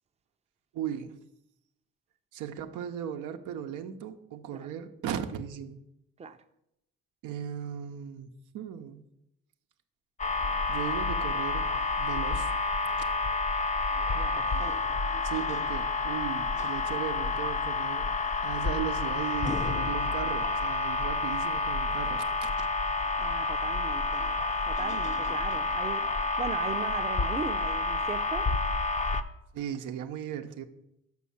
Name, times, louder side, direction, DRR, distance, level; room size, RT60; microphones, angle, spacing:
voice 1, 0.7-1.2 2.3-5.8 7.2-8.3 8.5-9.0 10.7-11.7 12.0-12.5 15.2-18.1 18.4-22.7 29.5-30.6, right 9 dB, 90° right, 7 dB, 0.8 m, -37 dB
sound 1, 10.2-29.2, left 3 dB, 25° left, 0.5 m, -29 dB
voice 2, 14.1-15.0 23.2-24.2 24.7-28.5, right 5 dB, 20° right, 8 dB, 0.5 m, -38 dB
6.3 x 6.3 x 7.1 m, 0.82 s
cardioid pair, 90°, 30 cm